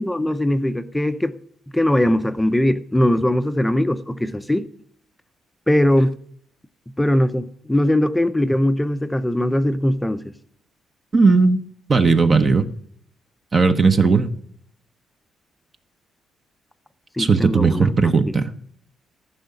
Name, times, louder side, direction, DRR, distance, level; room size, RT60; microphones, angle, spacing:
voice 1, 0.0-1.3 1.7-4.7 5.7-6.1 7.0-10.3 17.2-18.3, left 1 dB, 5° left, 0.6 m, -20 dB
voice 2, 11.1-11.6 11.9-12.7 13.5-14.3 17.2-18.5, right 4 dB, 30° right, 0.9 m, -16 dB
14.5 x 5.6 x 8.3 m
cardioid pair, 120°, 0 cm